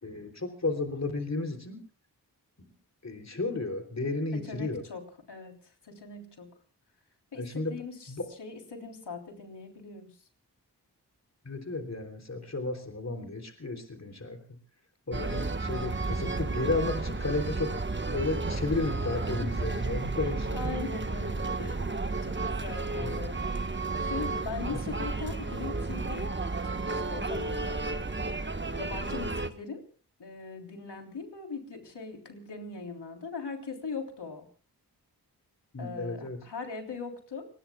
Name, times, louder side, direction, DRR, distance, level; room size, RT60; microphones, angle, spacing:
voice 1, 0.0-1.8 2.6-2.7 3.0-4.8 7.3-7.8 8.1-8.3 11.4-14.6 15.1-17.8 18.1-20.5 23.0-23.2 35.7-36.4, left 3 dB, 40° left, 3 dB, 3.3 m, -33 dB
voice 2, 4.3-6.5 7.3-7.4 7.7-8.1 8.4-10.1 20.5-21.9 22.2-23.6 24.1-26.3 26.6-27.8 28.7-29.8 30.2-34.5 35.8-37.5, left 4 dB, 85° left, 3 dB, 3.6 m, -40 dB
sound 1, 15.1-29.5, right 3 dB, 30° right, 1.4 m, -32 dB
29.5 x 20.0 x 2.3 m, 0.37 s
cardioid pair, 40°, 40 cm